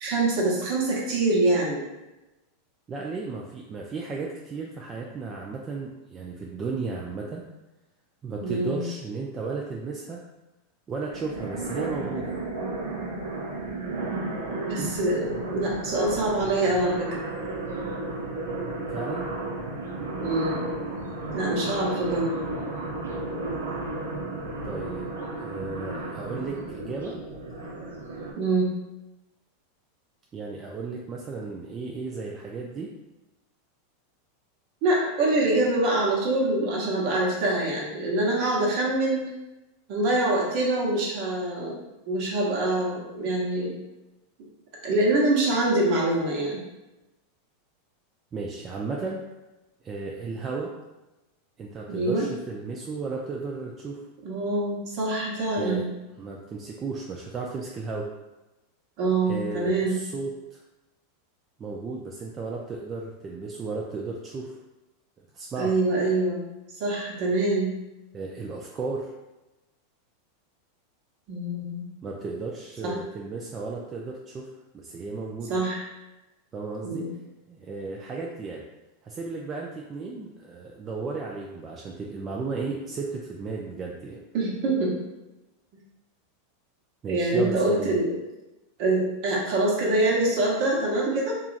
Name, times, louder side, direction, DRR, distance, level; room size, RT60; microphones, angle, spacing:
voice 1, 0.0-1.8 8.4-8.8 14.7-17.2 20.2-20.6 21.3-22.3 28.4-28.8 34.8-39.2 39.9-43.7 44.8-46.6 51.9-52.2 54.2-55.9 59.0-60.0 65.6-66.4 66.8-67.7 71.3-71.9 72.8-72.9 75.5-75.8 76.8-77.1 84.3-85.0 87.1-88.1 88.8-91.3, right 2 dB, 55° right, -3 dB, 1.0 m, -25 dB
voice 2, 2.9-7.4 8.2-10.2 10.9-12.4 18.9-19.3 24.6-27.2 30.3-32.9 48.3-49.3 49.8-50.7 51.6-54.0 55.6-55.8 56.2-58.1 59.2-60.6 61.6-64.6 65.3-65.7 68.1-69.1 72.0-74.5 74.7-75.6 76.5-77.1 77.5-78.6 79.0-84.2 87.0-88.0, right 4 dB, 30° right, -2 dB, 0.3 m, -34 dB
sound 1, 11.1-28.3, right 2 dB, 90° right, 0.5 m, -33 dB
2.8 x 2.4 x 2.4 m, 1.0 s
hypercardioid pair, 110°, 0 cm